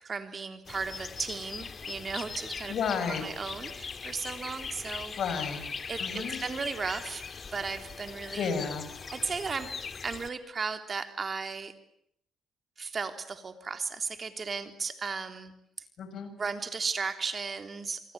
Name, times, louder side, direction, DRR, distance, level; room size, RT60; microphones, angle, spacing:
voice 1, 0.0-2.8 3.1-5.1 5.9-7.2 7.5-8.5 9.1-9.7 10.0-11.7 12.8-15.5 16.4-18.1, right 5 dB, 40° right, 8 dB, 3.4 m, -35 dB
sound 1, 0.6-10.3, left 5 dB, 40° left, 2.1 m, -40 dB
voice 2, 2.7-3.2 5.2-5.6 6.0-6.4 8.3-8.8 16.0-16.3, left 6 dB, 65° left, 9 dB, 6.8 m, -32 dB
28.0 x 24.0 x 8.6 m, 0.71 s
cardioid pair, 90°, 0 cm